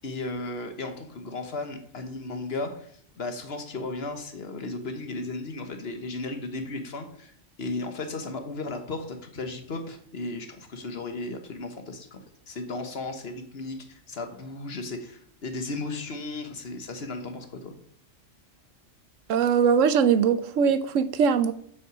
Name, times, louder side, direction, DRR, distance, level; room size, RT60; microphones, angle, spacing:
voice 1, 0.0-7.3 7.6-12.2 12.5-17.8, left 2 dB, 55° left, 6 dB, 1.4 m, -35 dB
voice 2, 19.3-21.5, right 7 dB, 85° right, 13 dB, 1.1 m, -21 dB
7.9 x 6.2 x 6.2 m, 0.65 s
omnidirectional pair, 1.3 m